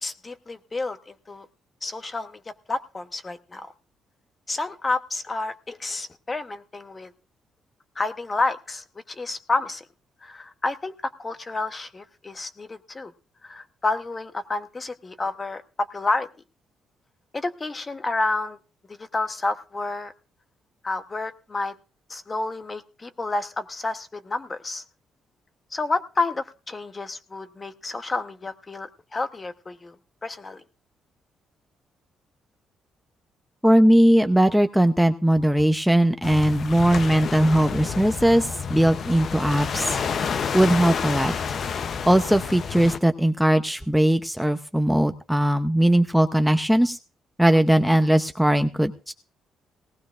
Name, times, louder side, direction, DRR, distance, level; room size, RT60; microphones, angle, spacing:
voice 1, 0.0-1.5 1.8-3.7 4.5-7.1 7.9-9.8 10.2-13.1 13.4-16.3 17.3-18.6 18.9-20.1 20.8-21.7 22.1-24.8 25.7-30.0 30.2-30.6, left 3 dB, 25° left, 10 dB, 1.0 m, -30 dB
voice 2, 33.6-40.0 40.5-41.3 42.1-47.0 47.4-49.1, right 1 dB, 5° right, 8 dB, 0.7 m, -19 dB
sound 1, 36.2-43.0, left 6 dB, 55° left, 0.7 m, -29 dB
19.0 x 15.0 x 2.5 m, 0.34 s
cardioid pair, 90°, 0 cm